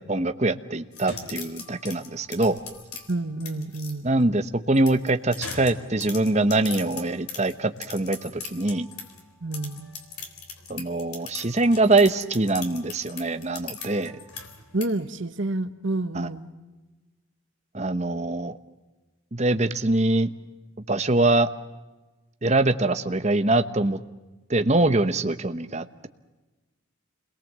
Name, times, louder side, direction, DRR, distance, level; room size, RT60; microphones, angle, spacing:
voice 1, 0.1-2.6 4.0-8.9 10.7-14.2 16.1-16.3 17.7-18.5 19.3-20.3 20.9-21.5 22.4-24.0 24.5-26.1, right 2 dB, 30° right, 9 dB, 1.0 m, -23 dB
sound 1, 0.9-3.9 4.7-9.2 9.5-14.9, left 5 dB, 90° left, 3.7 m, -40 dB
voice 2, 3.1-4.2 9.4-9.9 14.7-16.5, right 2 dB, 55° right, 10 dB, 1.3 m, -29 dB
28.5 x 21.5 x 7.5 m, 1.2 s
head